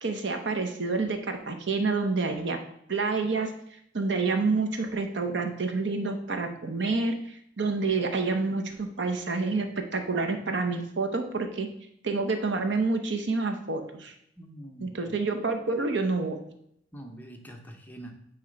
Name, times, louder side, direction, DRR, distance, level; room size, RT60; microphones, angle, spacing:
voice 1, 0.0-2.6 2.9-3.5 3.9-7.1 7.6-11.7 12.0-14.1 14.8-16.4, right 3 dB, 70° right, 6 dB, 0.9 m, -28 dB
voice 2, 14.4-15.2 16.9-18.1, right 1 dB, 10° left, 2 dB, 0.8 m, -44 dB
8.6 x 3.1 x 5.1 m, 0.72 s
head